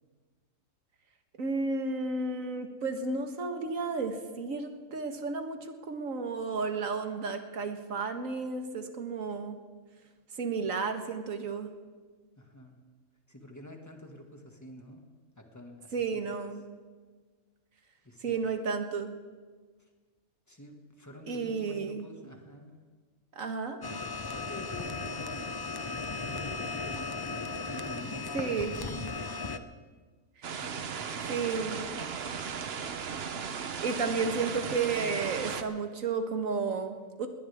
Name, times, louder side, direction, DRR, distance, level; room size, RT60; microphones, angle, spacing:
voice 1, 1.4-9.6 10.4-11.7 15.9-16.6 18.2-19.1 21.3-22.0 23.3-23.8 28.3-28.7 31.3-31.8 33.8-37.3, right 4 dB, 75° right, 6 dB, 1.8 m, -32 dB
voice 2, 12.4-12.8 13.3-15.0 15.4-16.2 18.0-18.5 19.8-19.9 20.5-22.8 24.2-26.0 26.3-29.1 29.5-29.9 30.5-31.6, equal, 10° left, 2 dB, 1.9 m, -48 dB
sound 1, 23.8-29.6, left 4 dB, 35° left, 0.3 m, -36 dB
sound 2, 30.4-35.6, right 6 dB, 50° right, 1.0 m, -36 dB
20.5 x 19.5 x 3.6 m, 1.5 s
omnidirectional pair, 1.4 m